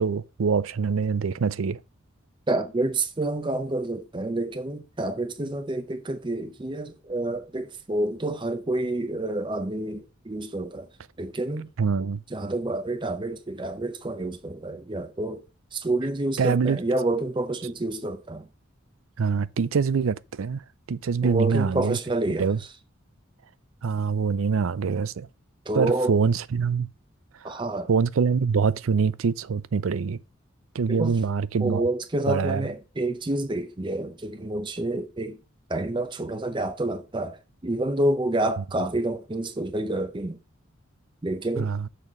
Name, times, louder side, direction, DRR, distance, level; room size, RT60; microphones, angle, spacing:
voice 1, 0.0-1.8 11.8-12.2 16.4-16.8 19.2-20.6 20.9-22.0 22.4-22.6 23.8-25.3 25.7-26.9 27.9-30.2 30.7-31.9 32.3-32.7 41.6-41.9, right 5 dB, 80° right, 0.4 m, -24 dB
voice 2, 2.5-10.9 11.2-11.7 12.3-15.4 15.7-18.5 21.2-22.5 25.7-26.2 27.4-27.9 30.9-31.2 31.6-35.4 35.7-37.4 37.6-40.4 41.2-41.7, right 2 dB, 25° right, 0.6 m, -28 dB
7.1 x 4.2 x 5.9 m
head